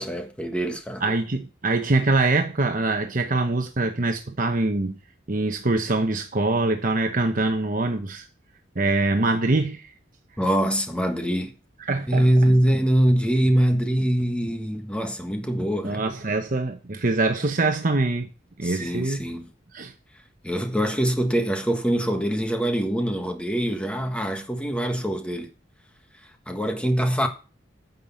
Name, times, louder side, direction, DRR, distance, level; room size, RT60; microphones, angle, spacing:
voice 1, 0.0-1.0 10.4-11.5 12.1-16.0 18.6-19.5 20.4-25.5 26.5-27.3, equal, 5° left, 1.5 m, -23 dB
voice 2, 1.0-5.0 5.3-8.3 8.8-9.9 11.9-12.3 15.8-18.3 18.6-19.3 19.7-19.9, right 2 dB, 45° right, 1.0 m, -24 dB
9.7 x 6.7 x 7.0 m
head